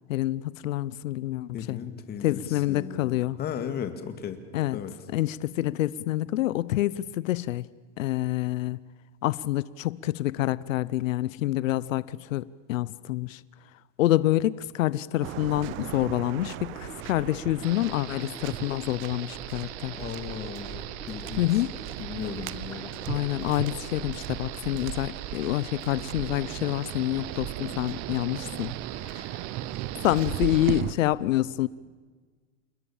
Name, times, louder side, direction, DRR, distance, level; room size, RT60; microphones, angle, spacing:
voice 1, 0.1-1.8 2.2-3.4 4.5-4.8 5.1-7.7 8.0-8.8 9.2-13.4 14.0-20.0 21.4-21.8 23.1-28.7 29.0-29.4 30.0-31.7, left 15 dB, 90° left, 0.7 m, -27 dB
voice 2, 1.5-4.4 4.7-4.9 19.9-21.5 22.0-22.9, left 8 dB, 25° left, 2.1 m, -36 dB
Waves surf, 15.2-30.9, right 15 dB, 30° right, 0.7 m, -37 dB
Gurgling, 16.5-24.9, left 2 dB, 10° left, 2.4 m, -48 dB
sound 1, 17.6-30.8, right 14 dB, 60° right, 1.4 m, -41 dB
28.5 x 21.0 x 7.2 m
supercardioid pair, 150°, 38 cm